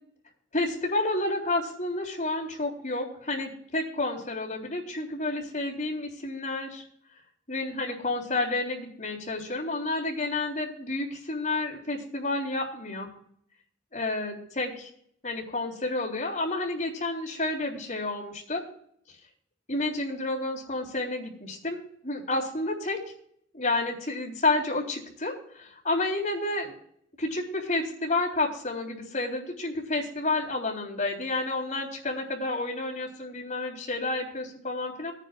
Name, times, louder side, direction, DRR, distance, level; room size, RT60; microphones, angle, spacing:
voice 1, 0.5-6.8 7.5-13.1 13.9-14.9 15.2-18.6 19.7-21.8 22.0-23.0 23.5-26.7 27.2-35.1, left 2 dB, 40° left, -2 dB, 3.6 m, -30 dB
20.5 x 10.0 x 2.4 m, 0.65 s
head